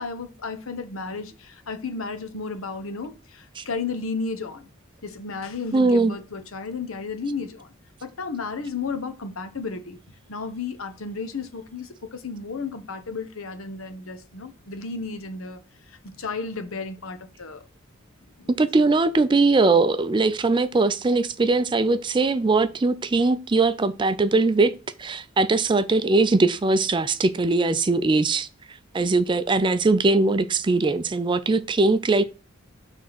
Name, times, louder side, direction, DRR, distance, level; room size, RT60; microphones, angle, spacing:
voice 1, 0.0-4.7 5.0-7.7 8.0-10.0 10.3-15.6 16.0-17.6 18.4-18.5, left 4 dB, 80° left, 1.0 m, -33 dB
voice 2, 5.7-6.1 18.5-28.5 28.9-32.2, right 3 dB, 25° right, 0.4 m, -21 dB
6.3 x 3.6 x 5.9 m
head